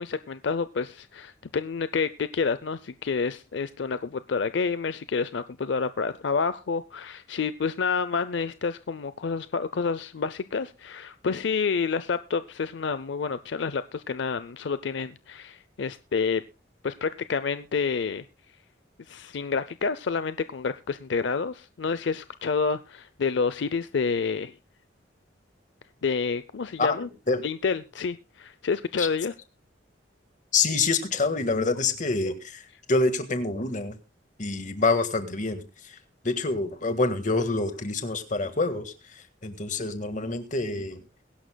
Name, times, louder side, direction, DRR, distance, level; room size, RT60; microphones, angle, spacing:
voice 1, 0.0-16.4 16.8-18.2 19.1-24.5 26.0-27.1 27.4-29.3, left 5 dB, 75° left, 13 dB, 0.5 m, -29 dB
voice 2, 30.5-32.6 32.9-34.0 34.4-36.0 36.2-41.0, left 3 dB, 45° left, 8 dB, 1.7 m, -26 dB
22.0 x 11.5 x 2.3 m, 0.30 s
head